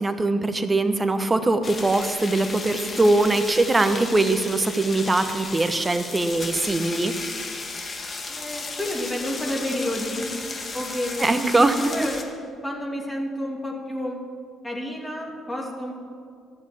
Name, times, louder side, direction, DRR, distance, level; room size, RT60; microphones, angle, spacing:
voice 1, 0.0-7.1 11.2-11.7, right 2 dB, 20° right, 9 dB, 1.1 m, -22 dB
sound 1, 1.6-12.2, left 3 dB, 40° left, 1.7 m, -34 dB
voice 2, 8.3-10.4 10.7-12.4 12.6-14.2 14.6-15.9, left 1 dB, 15° left, -1 dB, 2.8 m, -30 dB
13.0 x 7.2 x 8.9 m, 2.3 s
hypercardioid pair, 55°, 0 cm